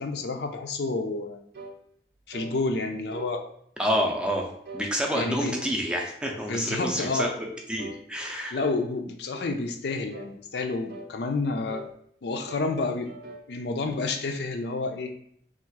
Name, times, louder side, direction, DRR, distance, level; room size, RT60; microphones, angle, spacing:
voice 1, 0.0-1.4 2.3-3.4 5.1-5.5 6.5-7.3 8.5-11.9 12.2-13.1 13.5-15.1, left 3 dB, 75° left, 5 dB, 0.4 m, -29 dB
sound 1, 1.5-1.8 2.3-2.6 3.1-3.3 3.9-4.1 4.6-4.9 5.4-5.7 6.2-6.5 7.0-7.2 7.8-8.0 8.5-8.8 9.3-9.6 10.1-10.4 10.9-11.1 11.7-11.9 12.5-12.7 13.0-13.5, right 2 dB, 55° right, 0.5 m, -42 dB
voice 2, 3.8-7.3 7.7-8.6, equal, 5° right, 0 dB, 0.5 m, -28 dB
3.5 x 2.4 x 4.5 m, 0.68 s
head